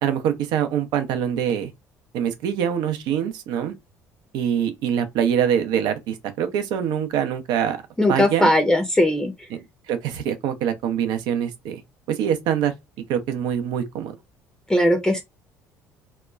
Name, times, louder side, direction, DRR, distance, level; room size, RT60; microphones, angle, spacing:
voice 1, 0.0-1.7 2.1-3.7 4.3-7.8 8.1-8.5 9.9-11.8 12.1-12.7 13.1-14.1, right 9 dB, 60° right, 0.6 m, -24 dB
voice 2, 8.0-9.5 14.7-15.2, left 1 dB, 5° left, 0.6 m, -19 dB
2.8 x 2.2 x 2.3 m
hypercardioid pair, 55°, 8 cm